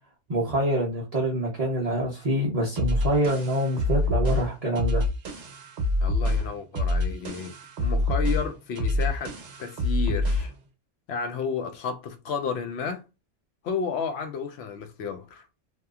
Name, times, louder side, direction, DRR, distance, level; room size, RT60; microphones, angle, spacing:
voice 1, 0.3-5.0, right 1 dB, 40° right, 0.7 m, -26 dB
sound 1, 2.8-10.6, left 1 dB, 65° right, 1.0 m, -26 dB
voice 2, 6.0-7.5 7.8-9.3 9.6-10.5 11.1-13.0 13.6-15.5, left 6 dB, 70° left, 0.8 m, -32 dB
2.8 x 2.3 x 2.3 m
omnidirectional pair, 1.2 m